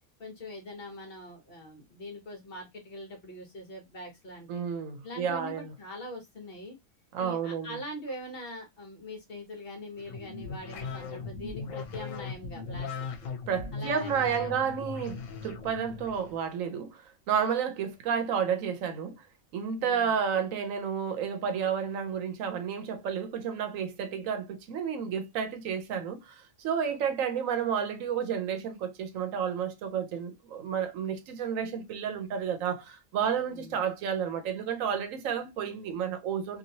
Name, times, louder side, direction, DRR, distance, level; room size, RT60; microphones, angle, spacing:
voice 1, 0.2-4.6 5.0-6.8 7.2-12.9 13.7-14.6 19.8-20.1 33.5-33.8, left 1 dB, 50° left, 1.1 m, -42 dB
voice 2, 4.5-5.7 7.1-7.8 13.5-19.2 19.5-36.6, right 7 dB, 85° right, 1.1 m, -31 dB
sound 1, 10.0-16.3, left 4 dB, 75° left, 1.1 m, -39 dB
2.9 x 2.6 x 2.7 m
omnidirectional pair, 1.4 m